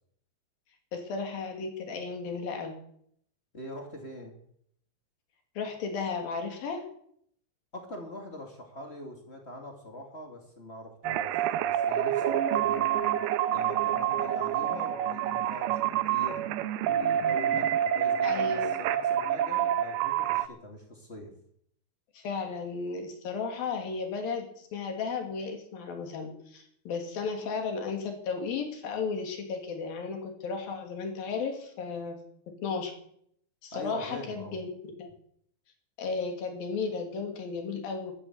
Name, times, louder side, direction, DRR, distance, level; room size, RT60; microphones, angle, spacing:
voice 1, 0.9-2.7 5.6-6.8 18.2-18.7 22.1-32.2 32.5-32.9 33.6-34.7 35.0-35.1 36.0-38.1, left 5 dB, 55° left, 3 dB, 4.1 m, -34 dB
voice 2, 3.5-4.3 7.7-13.2 13.5-16.4 16.8-21.3 33.7-34.6, left 1 dB, 40° left, 2 dB, 0.9 m, -43 dB
sound 1, 11.0-20.5, right 10 dB, 80° right, 2.4 m, -27 dB
13.0 x 12.5 x 8.0 m, 0.68 s
omnidirectional pair, 5.2 m